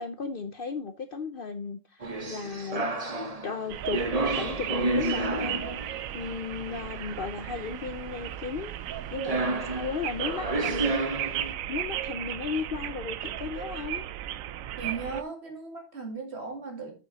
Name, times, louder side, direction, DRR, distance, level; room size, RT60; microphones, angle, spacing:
voice 1, 0.0-3.0 3.4-11.0 11.7-14.0, left 5 dB, 50° left, 0.8 m, -35 dB
sound 1, 2.0-6.2 6.7-6.8 8.9-9.0 9.2-11.5, right 2 dB, 30° right, 1.0 m, -30 dB
sound 2, 3.7-15.2, right 12 dB, 85° right, 1.0 m, -35 dB
voice 2, 14.8-16.9, right 4 dB, 55° right, 2.4 m, -37 dB
7.8 x 6.0 x 3.9 m
omnidirectional pair, 1.4 m